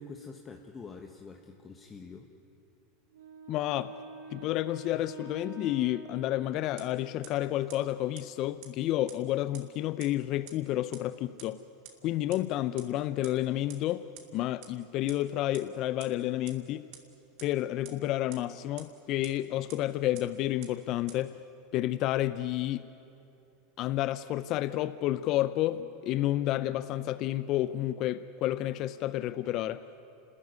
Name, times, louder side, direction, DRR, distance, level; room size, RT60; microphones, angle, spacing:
voice 1, 0.0-2.3, left 4 dB, 25° left, 3 dB, 1.6 m, -46 dB
Wind instrument woodwind instrument, 3.1-7.3, right 5 dB, 90° right, 2.8 m, -47 dB
voice 2, 3.5-3.9 4.3-11.6 12.0-14.0 14.3-16.9 17.4-21.3 21.7-22.8 23.8-29.9, left 14 dB, 50° left, 14 dB, 0.6 m, -30 dB
sound 1, 6.8-6.9 7.2-7.3 7.7-7.8 8.2-8.3 8.6-8.7 9.1-9.2 9.5-9.6 10.0-10.1 10.5-10.6 10.9-11.0 11.4-11.5 11.9-12.0 12.3-12.4 12.8-12.9 13.2-13.3 13.7-13.8 14.2-14.3 14.6-14.7 15.1-15.2 15.5-15.6 16.0-16.1 16.5-16.6 16.9-17.0 17.4-17.5 17.9-18.0 18.3-18.4 18.8-18.9 19.2-19.3 19.7-19.8 20.2-20.3 20.6-20.7 21.1-21.2, right 13 dB, 65° right, 2.7 m, -46 dB
29.0 x 14.0 x 9.6 m, 2.7 s
hypercardioid pair, 105°, 0 cm